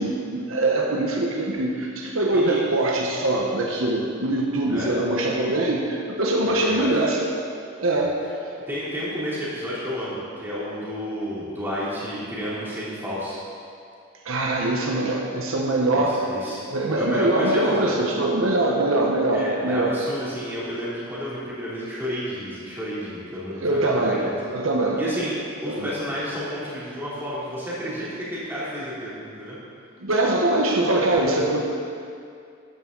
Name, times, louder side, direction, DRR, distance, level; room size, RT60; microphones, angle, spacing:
voice 1, 0.0-7.3 7.8-8.2 14.2-16.3 16.7-20.0 23.6-24.2 24.5-25.0 25.6-25.9 30.0-31.7, right 2 dB, 80° right, -1 dB, 1.3 m, -23 dB
voice 2, 6.5-6.9 7.9-8.0 8.7-13.4 15.9-18.0 19.3-24.3 25.0-25.3 25.6-29.6, equal, 10° right, -9 dB, 3.4 m, -31 dB
13.5 x 11.0 x 4.1 m, 2.4 s
head